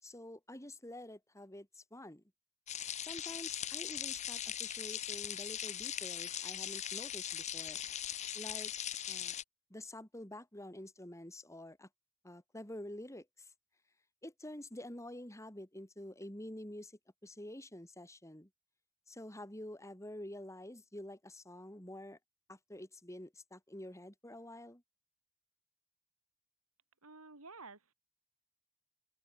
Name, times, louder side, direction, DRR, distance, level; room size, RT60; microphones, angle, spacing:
voice 1, 0.0-2.2 3.0-7.8 8.3-8.7 9.1-9.4 9.7-11.9 12.2-13.5 14.2-18.5 19.1-22.2 22.5-24.8, left 1 dB, 15° left, 3.9 m, -48 dB
sound 1, 2.7-9.4, left 10 dB, 30° left, 0.7 m, -40 dB
voice 2, 27.0-27.9, right 3 dB, 75° right, 3.8 m, -52 dB
open air
head